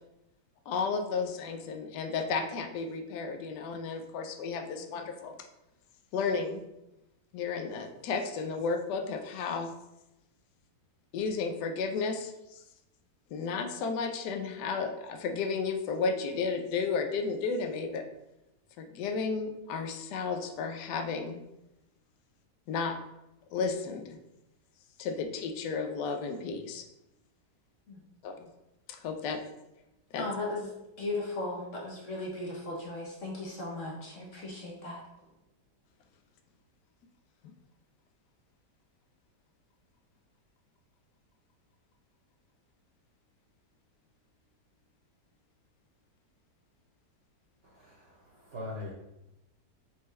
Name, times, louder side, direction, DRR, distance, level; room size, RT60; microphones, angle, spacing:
voice 1, 0.7-5.3 6.1-6.6 7.3-9.7 11.1-12.6 13.3-18.1 18.8-21.4 22.7-23.0 23.5-24.2 25.0-26.8 28.2-28.5 28.9-29.4 30.1-30.3 37.4-37.5, left 4 dB, 75° left, 6 dB, 1.1 m, -33 dB
voice 2, 30.1-30.7 31.0-35.0, left 2 dB, 55° left, -2 dB, 1.0 m, -37 dB
voice 3, 47.6-48.9, left 2 dB, 50° right, -4 dB, 0.9 m, -42 dB
4.3 x 3.6 x 3.1 m, 0.91 s
omnidirectional pair, 1.9 m